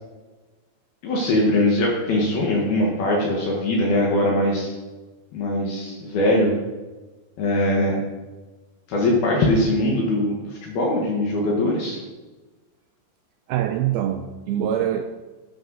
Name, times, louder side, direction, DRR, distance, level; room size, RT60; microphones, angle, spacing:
voice 1, 1.0-4.7 5.3-6.5 7.4-8.0 8.9-12.0, left 1 dB, 65° left, 3.3 m, -21 dB
voice 2, 13.5-15.0, right 10 dB, 85° right, 2.2 m, -24 dB
13.0 x 8.7 x 4.0 m
omnidirectional pair, 4.8 m